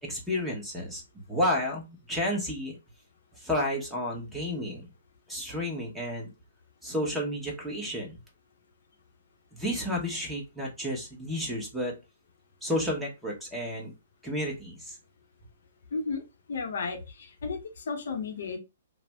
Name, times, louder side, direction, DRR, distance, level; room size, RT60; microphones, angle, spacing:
voice 1, 0.0-1.0 1.3-2.8 3.4-4.9 5.3-6.3 6.8-8.2 9.5-12.0 12.6-13.9 14.2-15.0, left 1 dB, 5° right, -2 dB, 1.0 m, -31 dB
voice 2, 15.9-16.2 16.5-18.6, left 4 dB, 65° left, 4 dB, 0.7 m, -33 dB
2.5 x 2.0 x 3.4 m, 0.26 s
hypercardioid pair, 140°, 0 cm